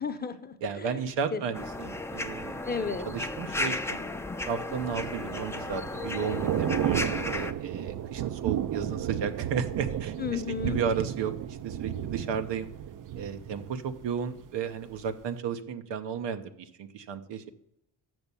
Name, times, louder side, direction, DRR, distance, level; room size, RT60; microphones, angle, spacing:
voice 1, 0.0-1.4 2.6-3.1 10.2-10.8, left 6 dB, 25° left, 8 dB, 0.8 m, -33 dB
voice 2, 0.6-2.6 3.1-4.0 4.4-12.7 13.1-17.5, right 6 dB, 90° right, 9 dB, 0.9 m, -34 dB
sound 1, 1.5-7.5, left 2 dB, 5° left, 0.5 m, -34 dB
Thunder / Rain, 4.6-14.5 14.8-15.1, right 10 dB, 50° right, 0.5 m, -33 dB
7.0 x 6.1 x 6.8 m, 0.78 s
cardioid pair, 90°, 42 cm